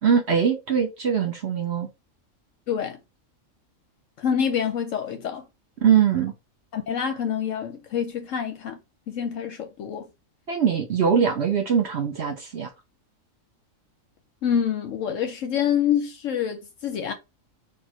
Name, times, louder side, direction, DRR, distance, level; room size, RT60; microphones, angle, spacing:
voice 1, 0.0-1.9 5.8-6.3 10.5-12.7, right 7 dB, 55° right, 1.1 m, -22 dB
voice 2, 2.7-3.0 4.2-5.4 6.7-8.8 9.1-10.1 14.4-17.1, left 8 dB, 70° left, 1.0 m, -26 dB
4.6 x 2.5 x 4.6 m
omnidirectional pair, 1.4 m